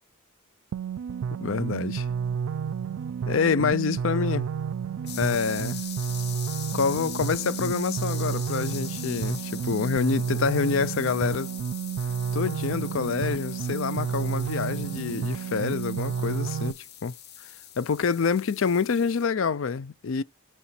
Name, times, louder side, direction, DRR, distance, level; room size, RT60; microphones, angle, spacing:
sound 1, 0.7-16.7, right 7 dB, 70° right, 0.3 m, -31 dB
voice 1, 1.4-2.1 3.3-4.5 5.2-5.8 6.7-11.5 12.3-17.1 17.8-20.2, left 5 dB, 65° left, 0.4 m, -27 dB
sound 2, 5.1-19.3, left 10 dB, 50° left, 0.9 m, -42 dB
7.0 x 3.1 x 5.8 m
head